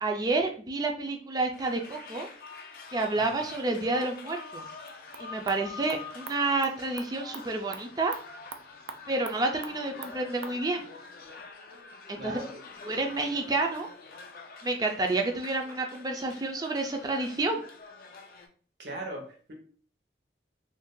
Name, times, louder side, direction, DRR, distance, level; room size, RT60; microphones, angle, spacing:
voice 1, 0.0-2.3 2.9-4.6 5.2-8.1 9.1-10.8 12.1-12.3 12.8-13.9 14.6-17.6, right 2 dB, 20° right, 3 dB, 0.4 m, -29 dB
sound 1, 1.4-18.5, left 4 dB, 50° left, 0.4 m, -46 dB
sound 2, 4.8-10.6, right 5 dB, 90° right, 0.4 m, -46 dB
voice 2, 12.1-12.6 18.8-19.5, right 1 dB, 70° right, 0 dB, 0.9 m, -39 dB
2.6 x 2.3 x 3.6 m, 0.43 s
head